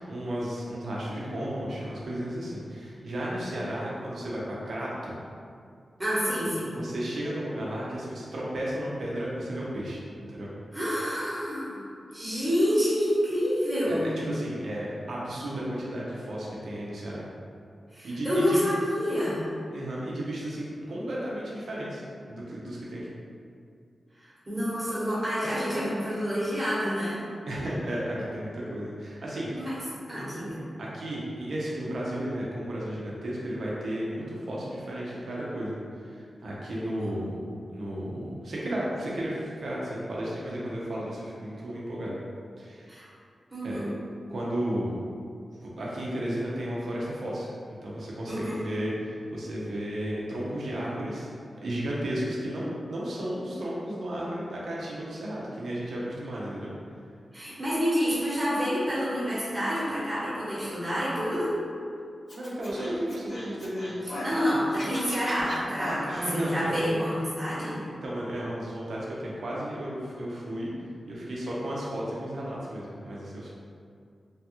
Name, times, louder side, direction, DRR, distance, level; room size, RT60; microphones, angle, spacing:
voice 1, 0.0-5.1 6.7-10.0 10.3-10.5 13.9-17.2 18.0-18.6 19.7-22.0 22.3-23.1 27.5-29.5 30.8-37.4 37.7-42.2 42.6-42.9 43.6-43.8 44.3-44.9 45.6-51.3 51.6-56.7 62.3-64.0 66.1-66.7 67.9-70.7 71.1-73.5, right 1 dB, 75° right, -5 dB, 0.7 m, -33 dB
voice 2, 6.0-6.8 10.7-14.1 17.9-19.5 24.1-27.2 29.6-29.8 30.1-30.6 36.8-37.1 42.9-43.0 43.5-43.9 48.3-48.6 57.3-61.6 64.0-67.8, equal, 30° right, -9 dB, 1.2 m, -28 dB
Scratching (performance technique), 62.3-64.4 64.7-66.3, left 1 dB, 75° left, 1.1 m, -37 dB
3.1 x 2.3 x 2.9 m, 2.4 s
wide cardioid pair, 90°, 0 cm